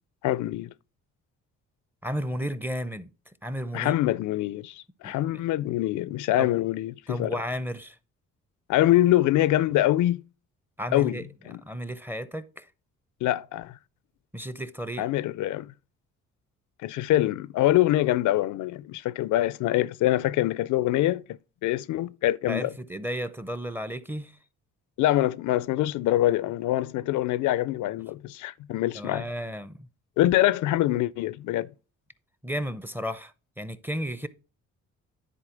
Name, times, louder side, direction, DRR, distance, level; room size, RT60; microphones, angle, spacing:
voice 1, 0.2-0.7 3.7-7.4 8.7-10.2 10.9-11.2 11.5-11.6 13.2-13.8 15.0-15.7 16.8-21.2 21.6-22.7 25.0-29.2 30.2-31.7, left 14 dB, 80° left, 0.4 m, -24 dB
voice 2, 2.0-3.1 3.4-4.0 5.0-5.4 6.4-6.5 7.1-8.0 10.8-11.3 11.6-12.7 14.3-15.1 22.5-24.4 28.9-29.9 32.4-34.3, equal, 5° right, 0.6 m, -33 dB
10.0 x 4.1 x 5.1 m
cardioid pair, 90°, 30 cm